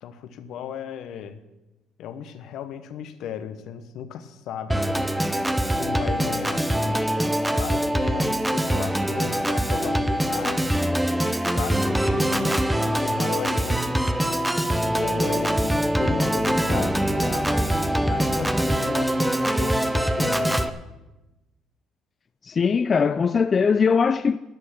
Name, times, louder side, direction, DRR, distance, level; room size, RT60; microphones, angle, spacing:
voice 1, 0.0-1.4 2.0-5.0 5.7-7.0 7.5-10.7 11.5-12.6 13.0-14.1 14.9-20.6, left 8 dB, 70° left, 1.0 m, -35 dB
Organ, 4.7-20.7, right 1 dB, 5° right, 0.7 m, -23 dB
voice 2, 22.4-24.4, left 5 dB, 35° left, 0.4 m, -20 dB
12.0 x 6.5 x 8.8 m
supercardioid pair, 85°, 0 cm